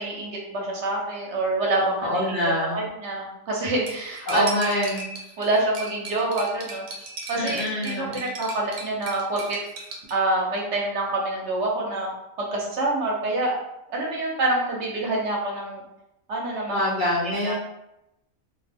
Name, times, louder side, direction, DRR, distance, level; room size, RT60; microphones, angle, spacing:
voice 1, 0.0-4.7 5.4-6.8 7.3-9.6 10.1-12.1 12.4-13.6 13.9-15.8 16.3-16.8 17.2-17.5, right 2 dB, 60° right, -2 dB, 0.8 m, -26 dB
voice 2, 2.0-2.8 4.3-5.1 7.3-8.2 16.7-17.5, left 1 dB, 90° left, -4 dB, 0.4 m, -25 dB
Cutlery silverware, 3.9-10.1, right 3 dB, 90° right, 1.1 m, -37 dB
2.4 x 2.1 x 3.3 m, 0.87 s
omnidirectional pair, 1.5 m